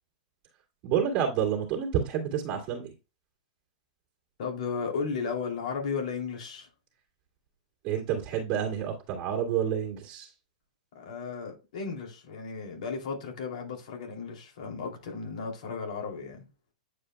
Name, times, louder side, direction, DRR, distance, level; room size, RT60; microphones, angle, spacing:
voice 1, 0.8-2.9 7.8-10.3, right 8 dB, 35° right, 2.1 m, -29 dB
voice 2, 4.4-6.7 10.9-16.5, left 5 dB, 65° left, 2.9 m, -35 dB
9.1 x 4.9 x 2.2 m
hypercardioid pair, 155°, 4 cm